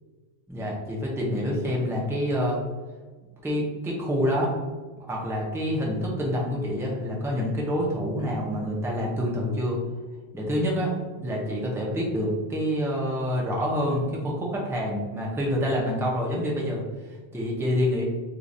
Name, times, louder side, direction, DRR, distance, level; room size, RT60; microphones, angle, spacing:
voice 1, 0.5-2.6 3.4-4.5 5.1-9.8 10.3-18.0, equal, 5° right, -3 dB, 0.6 m, -27 dB
4.6 x 2.5 x 2.7 m, 1.3 s
omnidirectional pair, 1.1 m